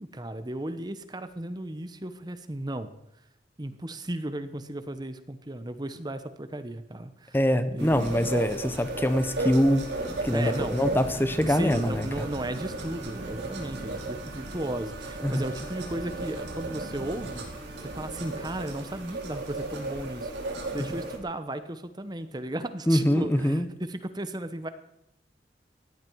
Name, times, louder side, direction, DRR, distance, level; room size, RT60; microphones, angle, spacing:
voice 1, 0.0-2.9 3.6-7.4 7.7-8.3 10.3-11.1 11.4-24.7, right 1 dB, 25° right, 11 dB, 1.0 m, -35 dB
voice 2, 7.3-9.8 10.2-12.1 15.2-15.4 22.9-23.7, equal, 10° left, 10 dB, 1.0 m, -24 dB
sound 1, 7.8-21.2, right 2 dB, 85° right, 4.5 m, -36 dB
sound 2, 8.4-20.0, right 1 dB, 55° right, 1.6 m, -44 dB
sound 3, 8.7-18.7, right 8 dB, 5° right, 3.9 m, -49 dB
18.5 x 14.5 x 4.7 m, 0.84 s
head